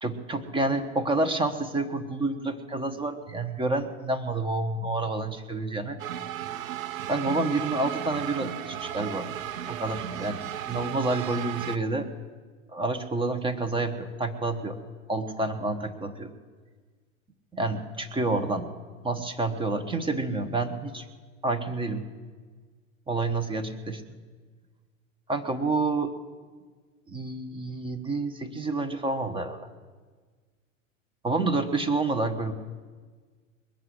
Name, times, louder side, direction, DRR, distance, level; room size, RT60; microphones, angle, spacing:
voice 1, 0.0-6.0 7.1-9.3 9.7-12.1 12.7-14.8 15.1-16.3 17.5-18.7 19.0-21.0 21.4-22.0 23.1-24.0 25.3-26.1 27.1-29.6 31.2-32.5, right 2 dB, 15° right, 8 dB, 1.2 m, -29 dB
sound 1, 6.0-11.8, right 10 dB, 85° right, 0.8 m, -35 dB
21.0 x 7.9 x 7.9 m, 1.5 s
hypercardioid pair, 115°, 40 cm